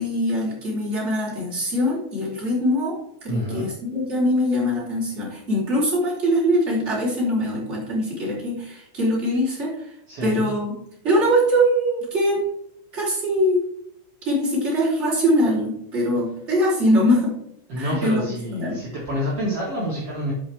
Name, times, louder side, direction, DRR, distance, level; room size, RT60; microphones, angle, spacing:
voice 1, 0.0-9.7 10.2-10.7 11.0-12.4 12.9-13.6 14.2-17.3 17.8-18.2 18.5-18.8, equal, 15° right, -6 dB, 3.0 m, -22 dB
voice 2, 3.3-3.7 10.1-10.4 17.7-20.3, equal, 55° right, -6 dB, 1.7 m, -27 dB
12.5 x 5.5 x 3.4 m, 0.76 s
omnidirectional pair, 5.6 m